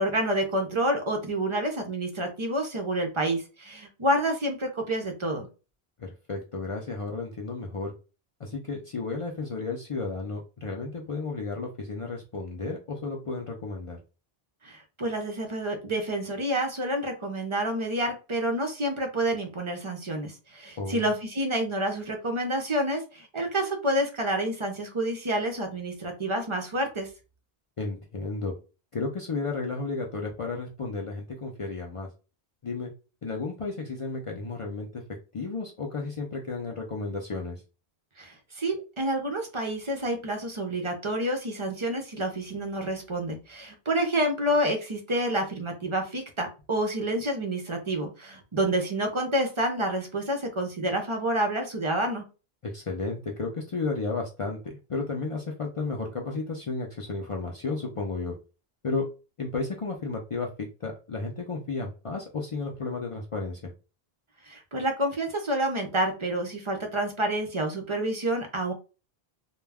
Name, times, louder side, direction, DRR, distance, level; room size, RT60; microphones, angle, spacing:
voice 1, 0.0-5.5 14.6-27.1 38.2-52.2 64.4-68.7, right 1 dB, 45° right, 3 dB, 0.4 m, -28 dB
voice 2, 6.0-7.9 8.4-14.0 20.8-21.1 27.8-28.5 28.9-32.1 32.6-32.9 33.2-35.0 35.3-37.6 52.6-58.3 58.8-59.1 59.4-63.7, left 3 dB, 55° left, 0 dB, 0.3 m, -33 dB
2.2 x 2.1 x 3.3 m, 0.33 s
omnidirectional pair, 1.1 m